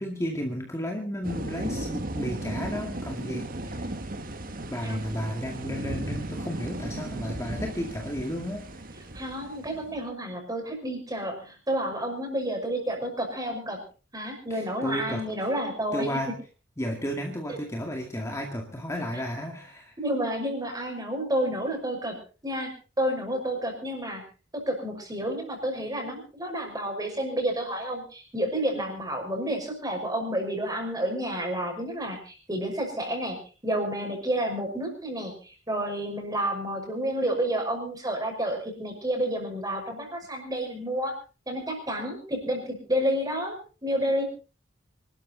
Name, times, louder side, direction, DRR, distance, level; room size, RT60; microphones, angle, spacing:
voice 1, 0.0-3.9 4.7-8.6 14.5-15.3 15.9-16.3 16.8-20.0, equal, 15° left, 2 dB, 2.1 m, -33 dB
sound 1, 1.2-10.1, right 1 dB, 50° right, 1.8 m, -35 dB
voice 2, 9.1-13.8 14.1-16.1 17.5-17.6 19.1-19.2 20.0-22.2 22.4-24.2 24.5-33.4 33.6-41.1 41.5-43.6 43.8-44.2, right 1 dB, 20° right, 3 dB, 5.9 m, -30 dB
25.0 x 12.5 x 4.0 m, 0.35 s
head